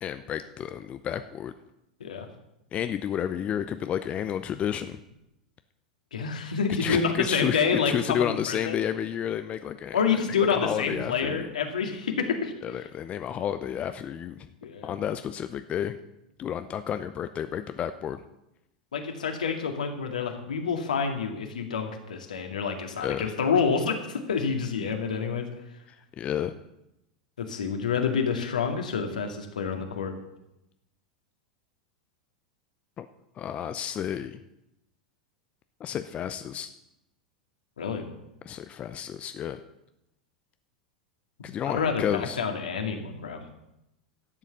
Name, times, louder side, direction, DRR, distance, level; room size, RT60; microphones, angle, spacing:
voice 1, 0.0-1.5 2.7-5.0 6.8-10.0 10.5-11.5 12.6-14.4 14.8-16.0 16.4-18.2 23.0-23.3 26.2-26.5 33.0-33.1 33.4-34.4 35.8-36.7 38.5-39.6 41.4-42.4, left 9 dB, 30° left, 10 dB, 0.6 m, -31 dB
voice 2, 6.1-8.8 9.9-12.5 14.6-15.0 18.9-25.5 27.4-30.1 37.8-38.0 41.7-43.4, left 6 dB, 75° left, 3 dB, 2.1 m, -28 dB
12.0 x 7.3 x 6.9 m, 0.88 s
figure-of-eight pair, 90°, 4 cm